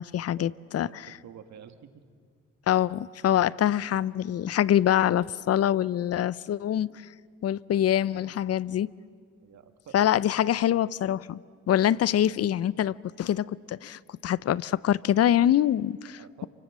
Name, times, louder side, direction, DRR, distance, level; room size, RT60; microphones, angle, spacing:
voice 1, 0.0-1.1 2.7-7.0 7.4-8.9 9.9-11.4 11.7-16.5, left 11 dB, 55° left, 0.6 m, -25 dB
voice 2, 0.8-2.0 9.4-10.1 16.1-16.5, right 8 dB, 65° right, 1.8 m, -49 dB
29.0 x 25.0 x 7.4 m
cardioid pair, 90°, 30 cm